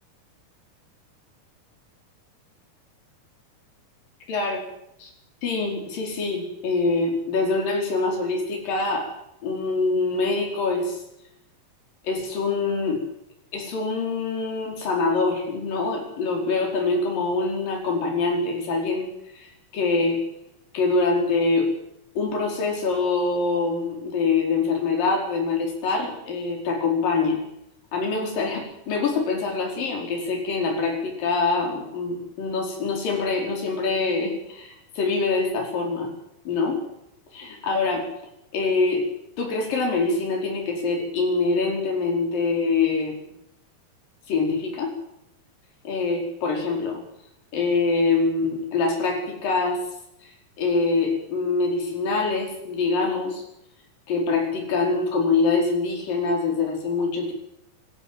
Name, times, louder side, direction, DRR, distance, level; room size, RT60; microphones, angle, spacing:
voice 1, 4.3-4.6 5.0-5.1 5.4-9.1 9.4-11.0 12.0-13.0 13.5-20.2 20.7-21.7 22.2-27.4 27.9-36.1 36.4-36.8 37.3-38.1 38.5-39.1 39.4-43.1 44.3-44.9 45.8-47.0 47.5-49.8 50.6-53.4 54.1-57.3, left 3 dB, 60° left, 1 dB, 6.3 m, -24 dB
25.5 x 14.0 x 7.7 m, 0.80 s
omnidirectional pair, 4.6 m